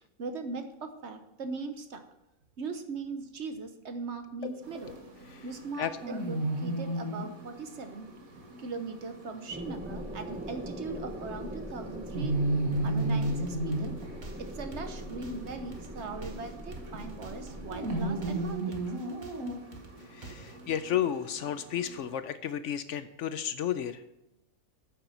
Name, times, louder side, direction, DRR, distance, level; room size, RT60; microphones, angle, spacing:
voice 1, 0.2-2.0 2.6-5.0 5.4-8.1 8.6-12.4 12.8-13.9 14.4-18.9, right 4 dB, 60° right, 7 dB, 1.1 m, -39 dB
sound 1, 4.6-22.2, right 1 dB, 85° right, 2.0 m, -36 dB
sound 2, 9.5-18.5, equal, 10° right, 0.7 m, -41 dB
sound 3, 12.7-20.7, right 2 dB, 35° right, 1.2 m, -50 dB
voice 2, 20.1-24.0, left 10 dB, 70° left, 11 dB, 0.9 m, -32 dB
9.2 x 6.8 x 5.6 m, 0.91 s
omnidirectional pair, 1.4 m